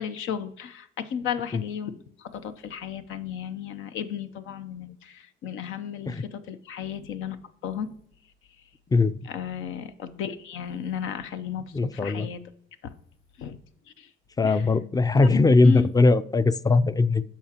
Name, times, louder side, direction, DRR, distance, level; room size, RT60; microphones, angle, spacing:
voice 1, 0.0-8.0 9.2-12.4 12.8-12.9 13.4-13.6 14.0-14.1 14.4-14.7 15.2-15.3 15.6-15.9, left 7 dB, 85° left, 10 dB, 0.7 m, -34 dB
voice 2, 11.7-12.3 14.4-17.2, left 3 dB, 20° left, 15 dB, 0.4 m, -20 dB
14.0 x 4.9 x 2.9 m, 0.65 s
cardioid pair, 90°, 20 cm